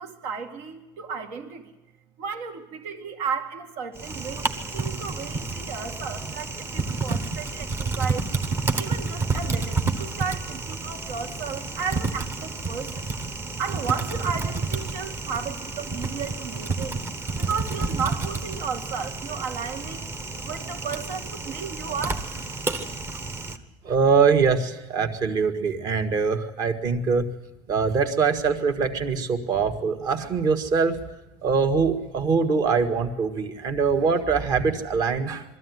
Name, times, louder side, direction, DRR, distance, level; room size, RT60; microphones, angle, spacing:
voice 1, 0.0-1.7 2.2-8.3 8.7-13.0 13.6-17.0 17.4-20.1 20.4-22.3, right 6 dB, 75° right, 6 dB, 2.2 m, -33 dB
Typing, 3.9-23.6, right 3 dB, 25° right, 1.1 m, -30 dB
voice 2, 23.8-27.3 27.7-31.1 31.4-35.4, right 5 dB, 40° right, 7 dB, 1.6 m, -23 dB
22.5 x 13.5 x 9.4 m, 1.0 s
cardioid pair, 165°, 10 cm